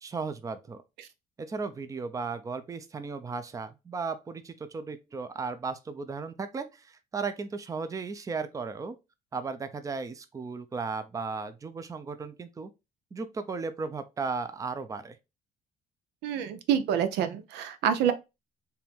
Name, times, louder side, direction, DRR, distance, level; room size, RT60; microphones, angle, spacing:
voice 1, 0.0-0.8 1.4-9.0 9.3-12.7 13.1-15.2, right 4 dB, 20° right, 0.5 m, -35 dB
voice 2, 16.2-18.1, right 9 dB, 85° right, 0.6 m, -27 dB
4.4 x 2.6 x 3.4 m
cardioid pair, 110°, 17 cm